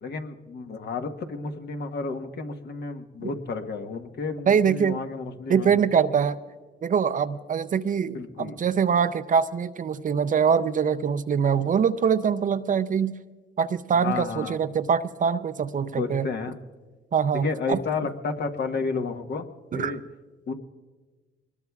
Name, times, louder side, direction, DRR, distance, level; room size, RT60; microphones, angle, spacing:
voice 1, 0.0-5.8 8.1-8.6 13.9-14.6 16.0-16.5 17.3-19.5 19.7-20.0 20.5-20.6, left 4 dB, 55° left, 5 dB, 1.3 m, -31 dB
voice 2, 4.5-5.0 5.5-6.4 6.8-13.1 13.6-16.3 17.1-17.8 19.7-20.0, right 7 dB, 40° right, 13 dB, 0.5 m, -23 dB
24.0 x 20.5 x 2.4 m, 1.3 s
cardioid pair, 90°, 20 cm